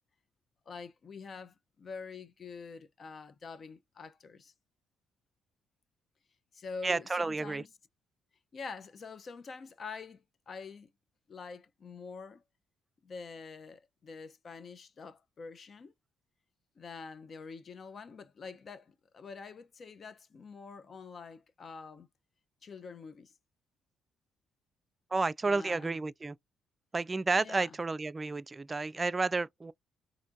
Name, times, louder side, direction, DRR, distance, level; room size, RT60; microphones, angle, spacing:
voice 1, 0.7-4.5 6.5-7.7 8.5-10.9 11.3-12.4 13.0-15.9 16.8-22.1 22.6-23.3 25.5-25.9 27.4-27.7, left 5 dB, 50° left, 0.6 m, -46 dB
voice 2, 6.8-7.6 25.1-26.4 26.9-29.7, right 3 dB, 30° right, 0.3 m, -31 dB
4.3 x 2.6 x 2.6 m
hypercardioid pair, 45°, 0 cm